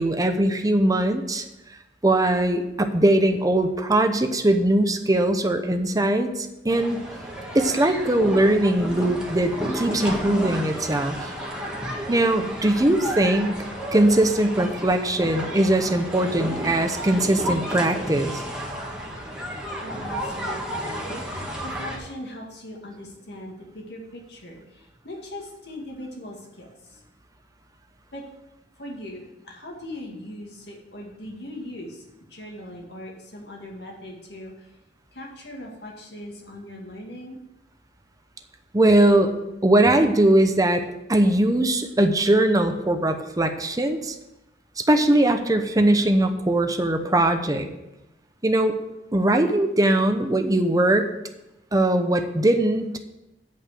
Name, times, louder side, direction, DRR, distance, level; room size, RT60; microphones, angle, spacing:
voice 1, 0.0-1.4 2.0-7.0 7.5-11.2 12.1-13.6 13.9-18.4 38.7-39.3 39.6-40.8 41.1-44.1 44.8-47.7 48.4-48.8 49.1-51.1 51.7-53.0, right 1 dB, 20° right, 7 dB, 0.8 m, -20 dB
sound 1, 6.7-22.0, equal, 5° right, 1.7 m, -32 dB
voice 2, 19.8-21.3 21.6-27.0 28.1-28.2 28.8-34.7 35.1-37.4, left 1 dB, 70° left, -1 dB, 2.1 m, -40 dB
8.8 x 5.3 x 7.6 m, 0.92 s
head